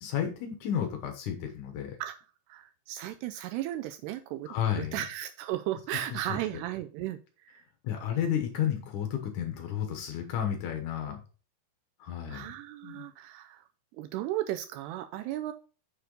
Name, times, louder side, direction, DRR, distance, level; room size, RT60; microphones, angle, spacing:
voice 1, 0.0-2.0 4.5-5.0 6.1-6.2 7.8-11.2 12.0-12.5 12.8-13.1, left 9 dB, 80° left, 5 dB, 1.8 m, -32 dB
voice 2, 2.5-7.6 12.3-13.7 14.0-15.5, right 13 dB, 85° right, 9 dB, 2.4 m, -35 dB
6.8 x 6.7 x 3.8 m, 0.36 s
omnidirectional pair, 5.2 m